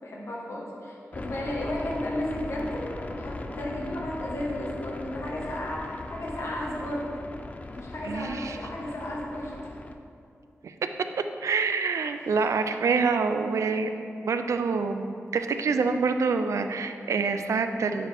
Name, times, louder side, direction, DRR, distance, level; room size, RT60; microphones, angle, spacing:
voice 1, 0.0-7.0 7.7-9.5, left 1 dB, 65° left, -4 dB, 1.4 m, -33 dB
sound 1, 1.1-9.9, left 2 dB, 30° left, 0.3 m, -39 dB
voice 2, 8.0-8.6 10.6-10.7 11.4-13.9 14.2-18.1, right 4 dB, 85° right, 8 dB, 0.4 m, -26 dB
9.2 x 4.8 x 3.5 m, 2.5 s
wide cardioid pair, 140°, 5 cm